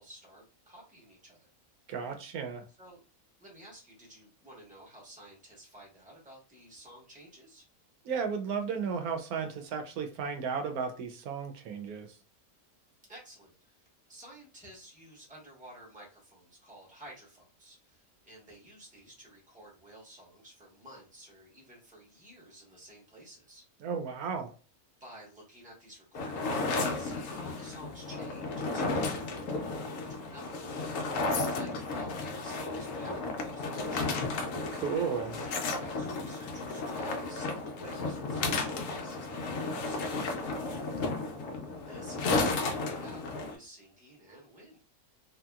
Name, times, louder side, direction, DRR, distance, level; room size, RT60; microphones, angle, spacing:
voice 1, 0.0-1.5 2.7-3.0 3.4-7.6 13.1-13.8 14.1-23.6 25.0-31.0 31.2-34.1 35.3-41.0 41.8-44.8, right 1 dB, 5° right, 0.9 m, -52 dB
voice 2, 1.9-2.6 8.1-12.1 23.8-24.5 34.7-35.4, right 6 dB, 80° right, 1.1 m, -34 dB
sound 1, 26.2-43.5, left 3 dB, 70° left, 0.9 m, -33 dB
2.8 x 2.6 x 2.3 m
omnidirectional pair, 1.6 m